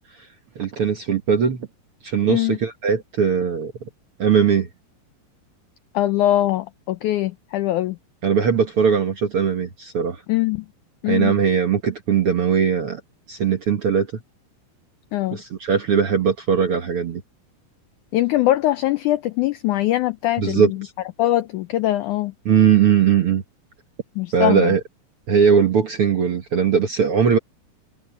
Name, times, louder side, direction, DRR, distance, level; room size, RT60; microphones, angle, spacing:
voice 1, 0.5-1.7 2.0-3.7 4.2-4.7 8.2-10.2 11.1-13.0 13.3-14.1 15.3-17.2 20.4-20.9 22.4-23.4 24.3-24.8 25.3-27.4, right 7 dB, 60° right, 1.5 m, -19 dB
voice 2, 5.9-8.0 10.3-10.6 11.0-11.3 15.1-15.4 18.1-20.6 21.2-22.3 24.2-24.7, left 14 dB, 90° left, 1.7 m, -21 dB
omnidirectional pair, 4.3 m